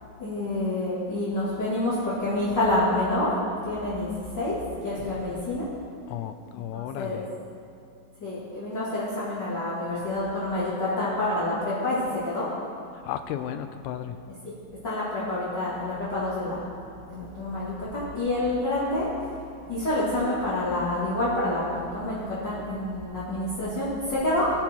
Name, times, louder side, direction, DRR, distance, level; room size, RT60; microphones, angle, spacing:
voice 1, 0.2-3.3 3.6-4.6 4.8-5.6 6.7-7.2 8.2-12.4 14.8-16.6 17.1-19.1 19.7-24.5, left 1 dB, 45° left, -10 dB, 1.5 m, -28 dB
voice 2, 6.1-7.3 13.0-14.2, left 10 dB, 90° left, 8 dB, 3.2 m, -34 dB
21.0 x 7.1 x 4.5 m, 2.4 s
omnidirectional pair, 5.8 m